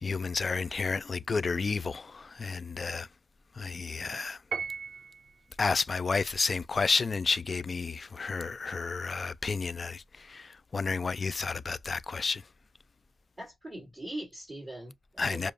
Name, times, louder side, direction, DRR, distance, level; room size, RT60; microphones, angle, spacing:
voice 1, 0.0-3.1 3.6-4.4 5.6-12.4 15.2-15.5, left 4 dB, 35° left, 0.4 m, -31 dB
Piano, 4.5-5.4, right 5 dB, 55° right, 0.5 m, -36 dB
voice 2, 13.4-15.5, right 1 dB, 15° right, 2.5 m, -41 dB
6.7 x 2.4 x 2.5 m
wide cardioid pair, 125°, 0 cm